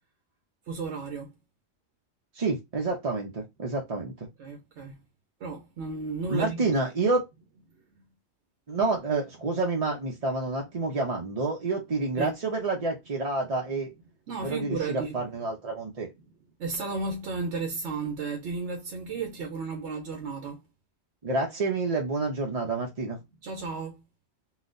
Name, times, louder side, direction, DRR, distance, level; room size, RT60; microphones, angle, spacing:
voice 1, 0.7-1.3 4.4-5.0 5.4-6.8 12.2-12.3 14.3-15.2 16.6-20.6 23.4-24.0, right 4 dB, 65° right, 1.0 m, -33 dB
voice 2, 2.3-4.3 6.3-7.2 8.7-13.9 14.4-16.1 21.2-23.2, right 3 dB, 40° right, 0.6 m, -28 dB
3.7 x 2.4 x 2.5 m
omnidirectional pair, 1.4 m